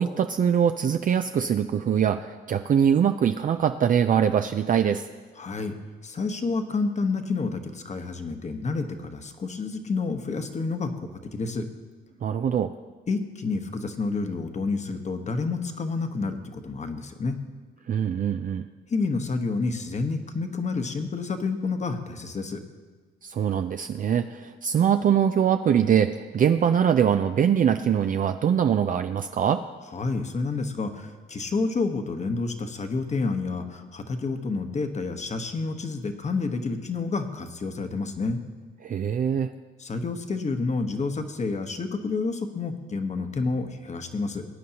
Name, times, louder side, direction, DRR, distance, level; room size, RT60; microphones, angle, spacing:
voice 1, 0.0-5.0 12.2-12.7 17.9-18.7 23.2-29.6 38.8-39.5, right 8 dB, 45° right, 7 dB, 0.4 m, -23 dB
voice 2, 5.4-5.7 6.0-11.7 13.1-17.4 18.9-22.6 29.9-38.4 39.8-44.5, left 4 dB, 35° left, 6 dB, 1.1 m, -29 dB
20.0 x 9.3 x 2.9 m, 1.4 s
cardioid pair, 90°, 20 cm